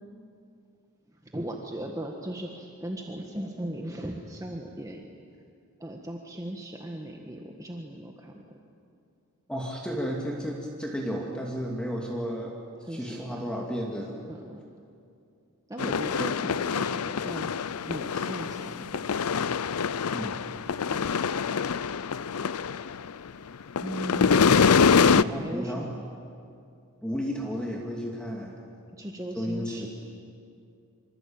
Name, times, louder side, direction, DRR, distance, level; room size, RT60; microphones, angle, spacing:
voice 1, 1.1-5.1 5.8-8.4 12.8-13.5 14.3-14.6 15.7-17.5 17.9-19.2 20.9-21.3 23.8-24.7 25.0-25.9 28.9-29.9, right 1 dB, 15° right, 1 dB, 1.6 m, -38 dB
voice 2, 9.5-12.6 12.9-14.2 20.1-20.4 25.2-26.1 27.0-28.6 29.3-29.9, equal, 5° left, -1 dB, 2.4 m, -33 dB
sound 1, 15.8-23.3 23.6-25.2, left 6 dB, 80° left, 0.6 m, -25 dB
26.5 x 25.0 x 8.8 m, 2.5 s
head